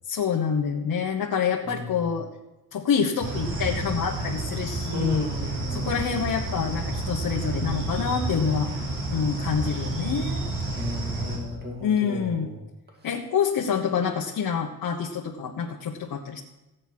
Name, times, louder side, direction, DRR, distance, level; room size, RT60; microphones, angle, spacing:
voice 1, 0.1-2.3 2.7-5.3 5.7-8.7 9.1-10.4 11.8-12.5 13.0-16.4, left 6 dB, 65° left, 0 dB, 1.3 m, -27 dB
sound 1, 3.2-11.4, right 2 dB, 65° right, 4.7 m, -30 dB
voice 2, 4.9-6.1 10.7-12.6, left 1 dB, 25° right, 0 dB, 2.4 m, -35 dB
15.5 x 9.1 x 6.1 m, 1.0 s
wide cardioid pair, 165°, 37 cm